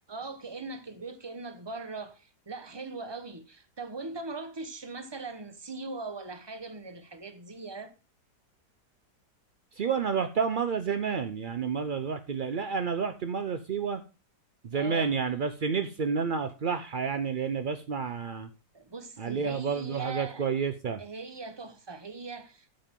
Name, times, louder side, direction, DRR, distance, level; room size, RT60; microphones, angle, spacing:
voice 1, 0.1-7.9 14.7-15.1 18.7-20.5 21.0-22.7, right 3 dB, 20° right, 0.9 m, -40 dB
voice 2, 9.7-14.0 14.6-18.5 19.2-21.0, right 6 dB, 65° right, 0.5 m, -30 dB
13.0 x 7.5 x 3.7 m
omnidirectional pair, 1.8 m